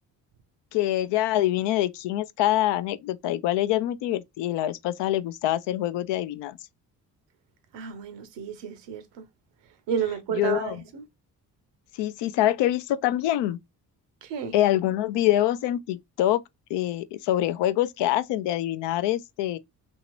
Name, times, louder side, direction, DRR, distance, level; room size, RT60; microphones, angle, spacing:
voice 1, 0.7-6.6 10.4-10.8 12.0-13.6 14.5-16.4 16.7-19.6, left 13 dB, 75° left, 0.5 m, -25 dB
voice 2, 7.7-9.3 9.9-11.0 14.2-14.5, right 8 dB, 80° right, 0.8 m, -31 dB
2.9 x 2.8 x 3.0 m
supercardioid pair, 55°, 43 cm